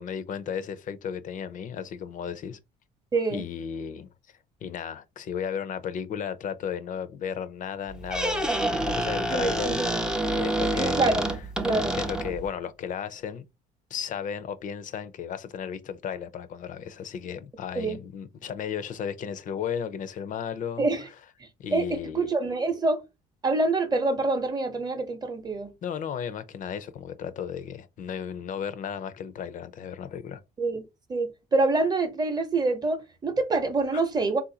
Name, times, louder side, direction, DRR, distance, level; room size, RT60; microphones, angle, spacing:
voice 1, 0.0-2.6 3.3-4.1 4.6-9.8 10.3-11.1 11.6-13.5 13.9-20.9 21.6-22.3 25.8-30.4 33.9-34.0, left 8 dB, 50° left, 0.5 m, -34 dB
voice 2, 3.1-3.4 9.3-10.2 10.8-11.3 11.6-12.0 17.8-18.0 20.8-21.1 21.4-21.9 22.1-23.0 23.4-25.7 30.6-30.8 31.1-34.4, right 3 dB, 25° right, 0.8 m, -26 dB
Squeak, 7.9-12.5, right 1 dB, 5° right, 0.4 m, -28 dB
3.6 x 2.5 x 2.7 m
cardioid pair, 110°, 17 cm